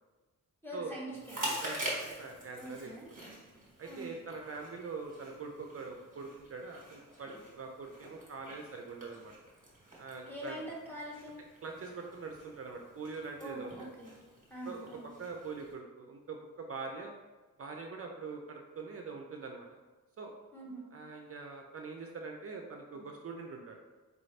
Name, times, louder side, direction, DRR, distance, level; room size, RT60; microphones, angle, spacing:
voice 1, 0.6-1.6 2.6-3.1 3.8-4.1 10.3-11.3 13.4-14.1 14.5-15.1 20.5-20.8, equal, 5° left, -5 dB, 1.1 m, -44 dB
Chewing mastication, 1.1-15.7, right 1 dB, 25° right, 1.4 m, -45 dB
voice 2, 1.3-2.9 3.8-9.3 10.0-10.6 11.6-13.9 14.6-17.1 17.6-19.8 20.2-20.3 20.9-23.8, right 4 dB, 45° right, 2 dB, 0.5 m, -43 dB
4.7 x 2.6 x 3.2 m, 1.2 s
wide cardioid pair, 120°, 34 cm